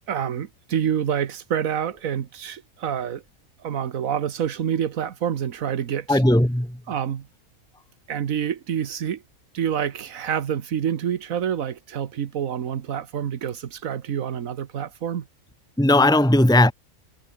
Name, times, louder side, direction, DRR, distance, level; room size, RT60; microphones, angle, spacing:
voice 1, 0.1-3.2 3.6-6.2 6.9-7.3 8.1-9.2 9.5-15.3, right 9 dB, 85° right, 1.5 m, -27 dB
voice 2, 6.1-6.8 15.8-16.7, left 1 dB, 5° left, 2.0 m, -17 dB
omnidirectional pair, 1.4 m